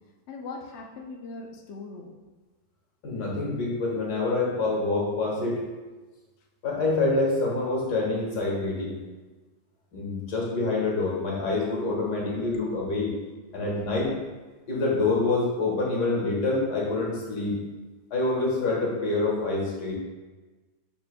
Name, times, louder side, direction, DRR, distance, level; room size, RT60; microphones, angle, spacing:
voice 1, 0.3-2.1 13.0-14.0, left 3 dB, 70° left, 1 dB, 0.6 m, -42 dB
voice 2, 3.0-5.6 6.6-9.0 9.9-13.1 13.5-14.1 14.7-17.6 18.1-19.9, left 3 dB, 55° left, -3 dB, 2.2 m, -26 dB
11.5 x 4.4 x 2.3 m, 1.3 s
omnidirectional pair, 2.1 m